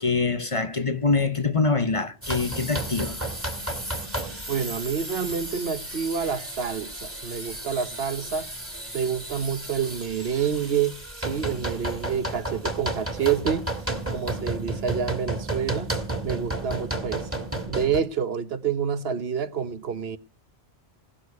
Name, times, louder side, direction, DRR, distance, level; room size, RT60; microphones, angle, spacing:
voice 1, 0.0-3.2, left 4 dB, 30° left, 0.9 m, -24 dB
sound 1, 2.2-18.0, right 2 dB, 10° right, 2.1 m, -32 dB
voice 2, 4.5-8.5 8.9-11.0 11.3-13.7 14.1-15.9 16.2-17.3 17.7-20.2, right 7 dB, 70° right, 1.1 m, -28 dB
17.5 x 6.6 x 9.4 m
omnidirectional pair, 1.1 m